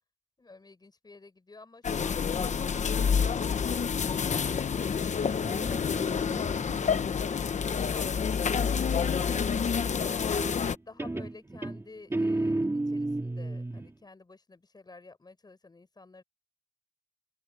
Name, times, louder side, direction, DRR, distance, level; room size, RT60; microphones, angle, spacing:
voice 1, 0.4-6.0 7.7-8.8 10.1-16.2, left 3 dB, 25° left, 5.5 m, -51 dB
sound 1, 1.8-10.8, left 6 dB, 50° left, 0.9 m, -28 dB
Guitar, 5.3-8.8 10.4-10.7 11.0-13.9, right 2 dB, 15° right, 2.2 m, -34 dB
open air
wide cardioid pair, 145°, 15 cm